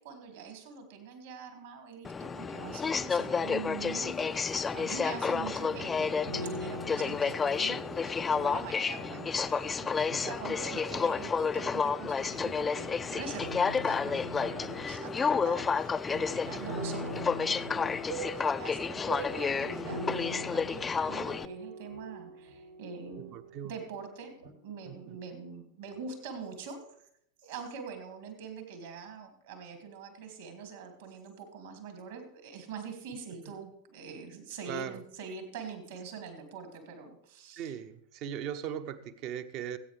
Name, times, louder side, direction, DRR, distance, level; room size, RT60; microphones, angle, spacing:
voice 1, 0.0-23.4 23.6-24.3 24.6-26.8 27.4-37.7, right 5 dB, 60° right, 5 dB, 2.5 m, -44 dB
Aircraft, 2.0-21.5, left 5 dB, 15° left, 0.4 m, -31 dB
sound 1, 5.2-11.7 12.0-12.8 13.4-24.1 24.4-24.5, equal, 80° right, 6.1 m, -43 dB
voice 2, 10.0-10.3 16.6-16.8 23.3-23.7 24.9-25.2 34.7-35.0 37.6-39.8, right 9 dB, 40° right, 10 dB, 0.8 m, -39 dB
20.0 x 8.6 x 3.4 m, 0.72 s
figure-of-eight pair, 90°, 0 cm